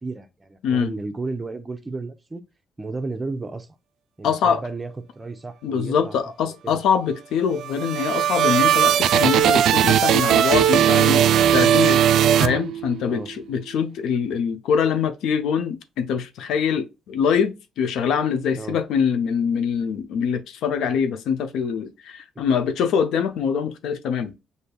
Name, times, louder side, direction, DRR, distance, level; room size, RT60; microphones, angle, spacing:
voice 1, 0.0-2.4 2.8-3.7 4.2-6.2 6.6-6.8 13.1-13.3 18.5-18.8 22.4-22.5, right 3 dB, 20° right, 0.7 m, -33 dB
voice 2, 4.2-4.6 5.6-12.1 12.4-24.4, left 7 dB, 85° left, 0.6 m, -24 dB
sound 1, 7.5-13.1, right 10 dB, 75° right, 0.3 m, -18 dB
6.7 x 2.7 x 2.2 m
cardioid pair, 90°, 0 cm